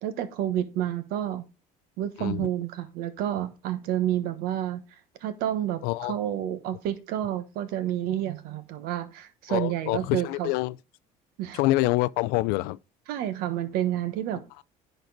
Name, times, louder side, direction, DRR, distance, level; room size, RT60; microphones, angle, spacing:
voice 1, 0.0-1.4 2.0-4.8 5.2-10.5 11.4-11.6 13.1-14.4, right 11 dB, 80° right, 1.1 m, -29 dB
voice 2, 2.2-2.5 5.8-6.2 9.5-10.8 11.5-12.8, left 19 dB, 90° left, 0.4 m, -26 dB
10.5 x 4.5 x 3.9 m
cardioid pair, 120°, 15 cm